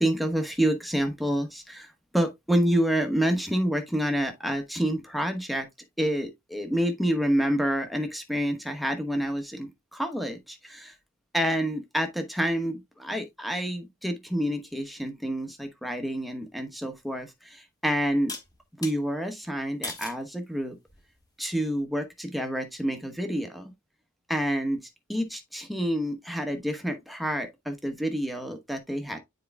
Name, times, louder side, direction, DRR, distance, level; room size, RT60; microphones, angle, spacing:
voice 1, 0.0-5.7 6.0-10.9 11.3-18.3 18.8-20.8 21.4-23.7 24.3-29.2, equal, ahead, 1.0 m, -28 dB
sound 1, 16.9-17.0 18.3-19.0 19.8-20.2 20.9-21.3, left 3 dB, 20° left, 1.5 m, -38 dB
9.4 x 4.6 x 2.3 m
head